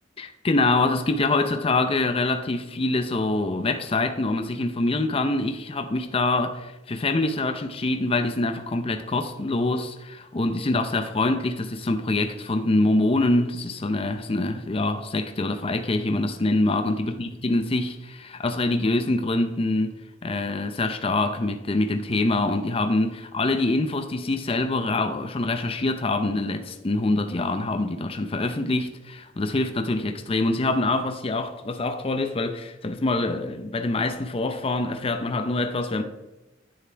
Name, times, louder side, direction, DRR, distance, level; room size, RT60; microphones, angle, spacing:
voice 1, 0.2-20.0 20.2-36.0, left 2 dB, 30° left, 0.5 m, -25 dB
9.7 x 6.8 x 4.5 m
head